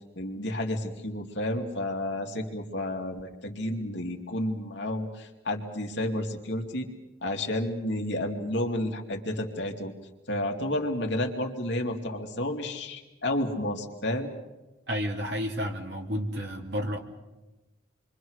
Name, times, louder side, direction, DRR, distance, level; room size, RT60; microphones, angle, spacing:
voice 1, 0.1-6.9 7.2-9.9 10.3-14.3, left 1 dB, 60° left, 2 dB, 2.5 m, -31 dB
voice 2, 14.9-17.0, equal, 55° right, 2 dB, 2.8 m, -31 dB
28.0 x 24.0 x 6.4 m, 1.1 s
head